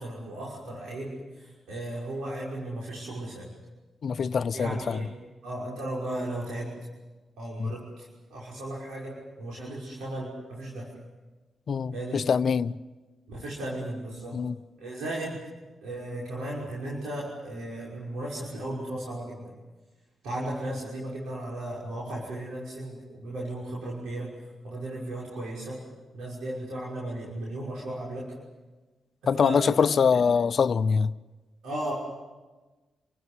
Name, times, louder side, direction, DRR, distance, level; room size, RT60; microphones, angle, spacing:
voice 1, 0.0-3.5 4.5-5.1 5.4-6.7 7.4-10.9 11.9-12.2 13.3-14.4 14.8-15.4 15.8-19.6 20.2-24.4 24.6-25.8 26.1-28.3 29.3-30.2 31.6-31.9, right 1 dB, 90° right, 5.9 m, -35 dB
voice 2, 4.0-5.1 7.6-7.7 11.7-12.8 14.3-14.5 29.3-31.1, left 6 dB, 65° left, 0.7 m, -24 dB
29.5 x 16.0 x 9.7 m
supercardioid pair, 55°, 0 cm